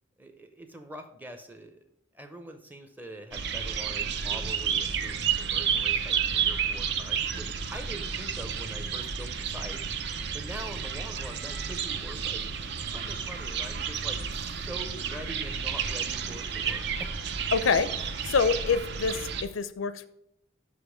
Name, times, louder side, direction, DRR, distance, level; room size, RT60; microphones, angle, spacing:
voice 1, 0.2-1.9 2.1-9.8 10.3-17.3, right 1 dB, 10° right, 7 dB, 0.6 m, -44 dB
sound 1, 3.3-19.4, right 7 dB, 55° right, 0.5 m, -31 dB
voice 2, 17.5-20.1, left 5 dB, 90° left, 13 dB, 0.5 m, -26 dB
5.9 x 5.1 x 4.9 m, 0.81 s
head